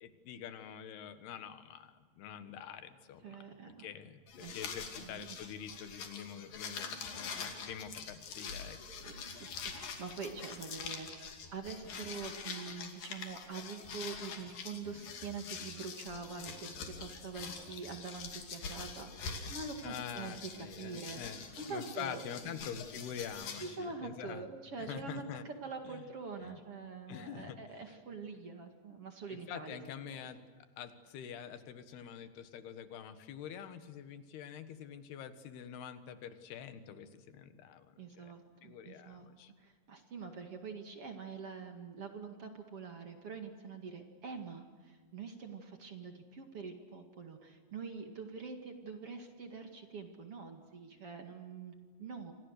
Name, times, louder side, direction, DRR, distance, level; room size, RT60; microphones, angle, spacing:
voice 1, 0.0-8.8 19.8-21.4 21.7-24.5 24.8-25.5 25.9-26.0 26.4-26.6 27.1-27.8 29.3-30.4 30.8-38.3 38.6-39.5, left 8 dB, 85° left, 10 dB, 3.6 m, -46 dB
voice 2, 3.2-3.9 4.4-4.6 5.0-5.4 9.0-22.7 23.6-29.8 30.1-30.3 38.0-39.3 39.6-52.3, right 4 dB, 45° right, 5 dB, 2.5 m, -45 dB
sound 1, 4.3-23.7, left 5 dB, 60° left, 4.2 m, -45 dB
29.5 x 25.5 x 6.6 m, 1.5 s
omnidirectional pair, 4.5 m